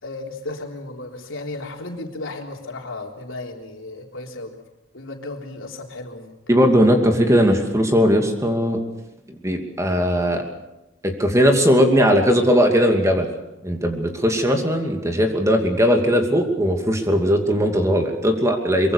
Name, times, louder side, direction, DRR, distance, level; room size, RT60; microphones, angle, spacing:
voice 1, 0.0-4.5 4.9-6.3, left 2 dB, 80° left, 1 dB, 3.7 m, -34 dB
voice 2, 6.5-8.8 9.4-10.4 11.0-13.3 13.6-18.9, equal, 15° right, 4 dB, 2.7 m, -18 dB
23.5 x 23.5 x 6.8 m, 0.91 s
head